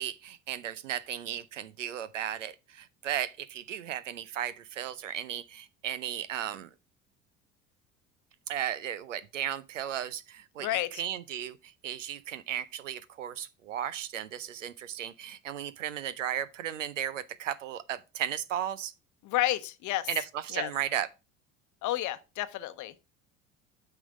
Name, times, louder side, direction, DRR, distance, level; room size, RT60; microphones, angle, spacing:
voice 1, 0.0-6.7 8.5-11.6 11.8-18.9 20.1-21.1, right 10 dB, 85° right, 0.6 m, -35 dB
voice 2, 10.6-10.9 19.2-20.1 20.5-20.7 21.8-23.1, left 15 dB, 55° left, 0.8 m, -31 dB
9.1 x 5.6 x 3.6 m
hypercardioid pair, 65°, 37 cm